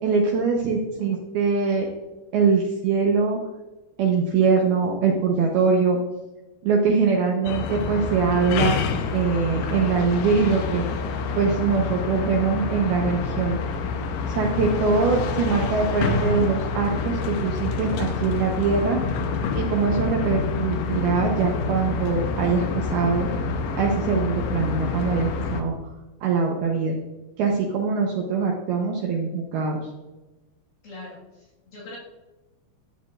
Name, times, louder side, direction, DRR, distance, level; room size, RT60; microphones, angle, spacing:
voice 1, 0.0-1.9 2.3-3.4 4.0-6.0 6.6-8.8 9.1-10.8 11.4-13.6 14.3-19.0 19.5-23.3 23.7-25.7 26.2-27.0 27.4-29.8, right 5 dB, 85° right, -1 dB, 2.2 m, -23 dB
sound 1, 7.5-25.6, left 4 dB, 85° left, 2.2 m, -27 dB
voice 2, 30.8-32.0, left 2 dB, 60° left, -6 dB, 3.2 m, -42 dB
12.5 x 8.2 x 2.5 m, 1.1 s
omnidirectional pair, 5.9 m